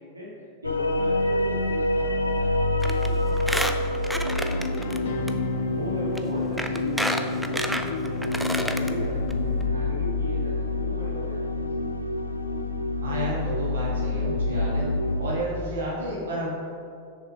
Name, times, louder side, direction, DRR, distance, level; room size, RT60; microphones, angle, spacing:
voice 1, 0.0-5.1 5.4-11.7, left 1 dB, 80° right, -4 dB, 1.8 m, -38 dB
sound 1, 0.6-15.4, left 2 dB, 80° left, 0.5 m, -27 dB
Squeak, 2.8-3.1 3.4-5.0 5.3-5.4 6.2-6.3 6.6-8.9 9.3-9.4 9.6-9.7, equal, ahead, 0.5 m, -29 dB
sound 2, 4.4-10.3, left 2 dB, 55° left, 0.9 m, -37 dB
voice 2, 13.0-14.9 15.2-16.5, right 1 dB, 65° right, -5 dB, 1.6 m, -31 dB
6.7 x 6.6 x 5.0 m, 2.5 s
figure-of-eight pair, 90°, 0 cm